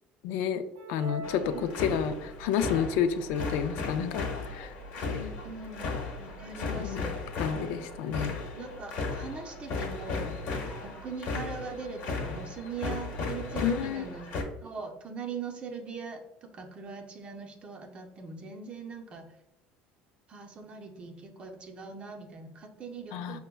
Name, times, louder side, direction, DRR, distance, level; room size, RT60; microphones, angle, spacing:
voice 1, 0.2-0.6 0.9-4.7 6.8-7.0 7.4-8.4 13.6-14.0 23.1-23.4, left 8 dB, 80° left, 9 dB, 0.3 m, -30 dB
sound 1, 0.8-2.4, right 1 dB, 75° right, 0.6 m, -43 dB
sound 2, 1.2-14.4, left 3 dB, 55° left, 1.0 m, -36 dB
voice 2, 1.5-1.9 4.9-5.9 6.2-7.1 8.5-10.4 10.8-14.3 14.6-19.3 20.3-23.4, right 5 dB, 30° right, 3 dB, 0.6 m, -41 dB
5.4 x 2.1 x 2.2 m, 0.88 s
cardioid pair, 125°, 4 cm